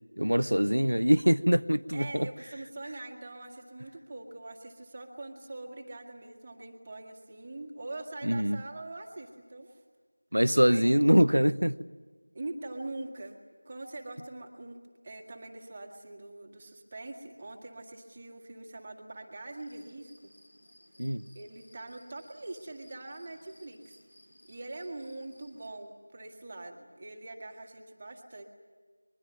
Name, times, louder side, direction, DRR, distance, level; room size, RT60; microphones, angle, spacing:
voice 1, 0.2-2.3 8.2-8.6 10.3-11.8 21.0-21.2, equal, 80° right, 16 dB, 0.8 m, -23 dB
voice 2, 1.9-9.8 10.6-10.8 12.3-13.4 13.7-14.8 15.0-20.3 21.3-24.0 24.5-28.4, right 2 dB, 20° right, 2 dB, 2.0 m, -43 dB
sound 1, 19.5-25.7, equal, 50° left, 5.4 m, -60 dB
24.0 x 22.5 x 9.4 m, 1.5 s
figure-of-eight pair, 175°, 0 cm